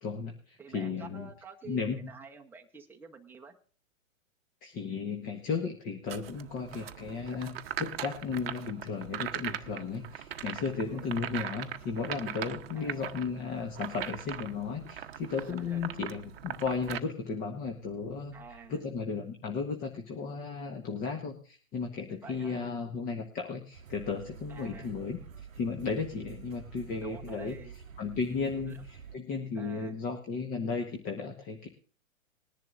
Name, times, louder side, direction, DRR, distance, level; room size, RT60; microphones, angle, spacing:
voice 1, 0.0-1.3 1.6-2.0 4.6-25.2 25.5-27.6 28.0-31.7, left 5 dB, 20° left, 4 dB, 1.2 m, -35 dB
voice 2, 0.6-3.5 10.9-11.1 12.7-13.0 15.4-15.9 18.3-18.8 22.2-22.5 24.5-24.9 27.0-27.7 28.6-28.8 29.5-29.9, right 5 dB, 5° right, 1 dB, 0.9 m, -49 dB
sound 1, 6.1-17.0, right 10 dB, 45° right, 0.9 m, -40 dB
sound 2, 13.7-19.1, equal, 80° left, 7.9 m, -55 dB
sound 3, 23.7-29.2, right 7 dB, 80° right, 0.8 m, -48 dB
20.5 x 10.5 x 2.6 m, 0.40 s
figure-of-eight pair, 115°, 40 cm